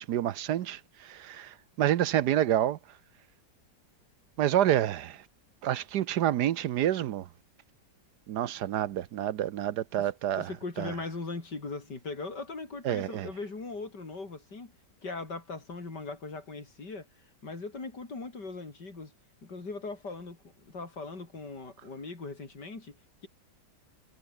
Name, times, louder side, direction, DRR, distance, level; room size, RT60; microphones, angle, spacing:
voice 1, 0.0-2.8 4.4-5.2 5.6-7.3 8.3-10.5 10.8-10.9 12.8-13.3, right 11 dB, 70° right, 1.3 m, -28 dB
voice 2, 10.0-14.7 15.0-17.1 17.4-19.1 19.4-23.0, left 3 dB, 75° left, 4.8 m, -40 dB
omnidirectional pair, 1.9 m